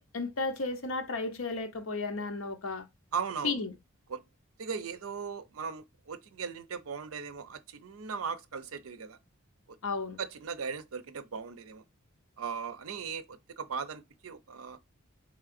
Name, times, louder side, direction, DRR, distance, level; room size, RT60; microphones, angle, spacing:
voice 1, 0.0-2.9 3.4-3.7 9.8-10.2, left 3 dB, 70° left, 0.7 m, -33 dB
voice 2, 3.1-3.6 4.1-4.2 4.6-9.2 10.2-11.8 12.4-14.8, right 6 dB, 80° right, 0.5 m, -38 dB
3.7 x 3.2 x 2.4 m
head